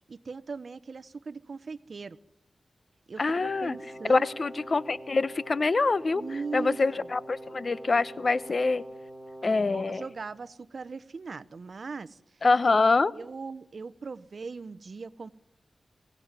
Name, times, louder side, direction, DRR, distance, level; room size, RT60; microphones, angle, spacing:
voice 1, 0.1-2.2 3.1-4.3 6.1-7.1 9.4-12.2 12.7-12.8 13.1-15.3, right 4 dB, 60° right, 16 dB, 0.9 m, -39 dB
voice 2, 3.2-3.8 4.1-6.2 6.5-8.8 9.4-10.0 12.4-13.1, left 3 dB, 50° left, 17 dB, 0.9 m, -25 dB
Brass instrument, 3.3-10.2, right 1 dB, 5° left, 4.4 m, -45 dB
23.0 x 18.0 x 9.7 m, 0.85 s
wide cardioid pair, 80°, 0 cm